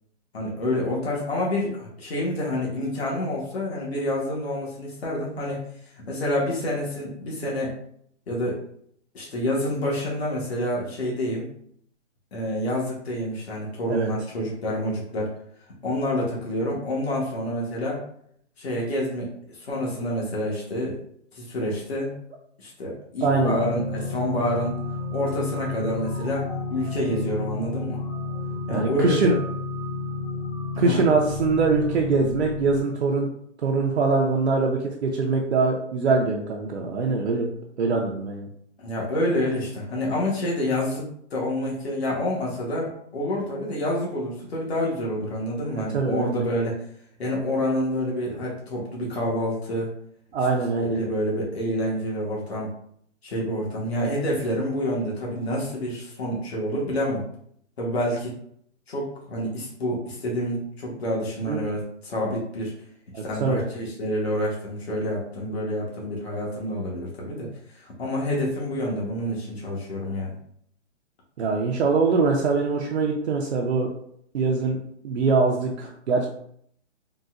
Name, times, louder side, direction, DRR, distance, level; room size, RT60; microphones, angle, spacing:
voice 1, 0.3-5.6 6.1-7.7 8.3-8.6 9.1-11.5 12.3-15.3 15.8-18.0 18.6-21.0 21.3-22.1 22.6-24.8 25.1-28.0 28.7-29.3 30.7-31.0 38.8-46.7 47.2-49.9 50.9-52.7 53.2-57.2 57.8-58.3 58.9-62.7 63.2-67.5 67.7-70.3, left 1 dB, 55° left, -4 dB, 1.2 m, -28 dB
sound 1, 23.2-32.8, left 3 dB, 10° left, 0.6 m, -31 dB
voice 2, 23.2-23.6 28.7-29.3 30.8-33.3 33.6-37.5 37.8-38.5 45.7-46.4 50.3-51.0 61.5-61.6 63.1-63.6 71.4-73.9 74.3-74.8 75.0-76.3, right 4 dB, 60° right, 0 dB, 0.6 m, -23 dB
3.9 x 2.2 x 2.4 m, 0.66 s
hypercardioid pair, 170°, 37 cm